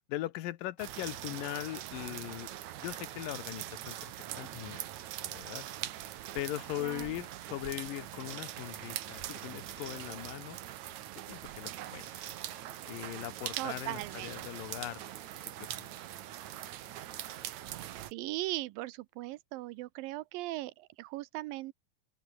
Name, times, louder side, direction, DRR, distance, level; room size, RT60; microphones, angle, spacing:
voice 1, 0.1-2.5 2.8-4.8 5.2-5.6 6.4-10.6 11.3-12.1 12.9-15.0 15.6-15.9, left 15 dB, 75° left, 2.5 m, -40 dB
sound 1, 0.8-18.1, right 13 dB, 65° right, 2.0 m, -42 dB
Shatter, 9.6-17.5, right 2 dB, 20° right, 5.7 m, -64 dB
voice 2, 13.6-14.3 17.7-17.8 18.1-21.7, right 18 dB, 80° right, 2.2 m, -38 dB
open air
omnidirectional pair, 4.3 m